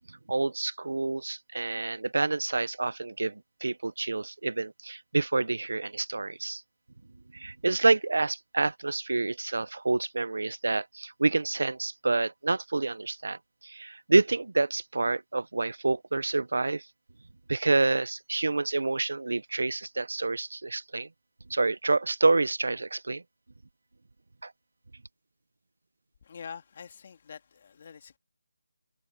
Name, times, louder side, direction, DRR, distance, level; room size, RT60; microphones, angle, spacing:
voice 1, 0.3-6.6 7.3-16.9 17.5-21.1 21.5-23.2 24.4-24.5, right 3 dB, 65° right, 0.7 m, -28 dB
voice 2, 26.2-28.2, left 6 dB, 25° left, 2.3 m, -45 dB
figure-of-eight pair, 180°, 0 cm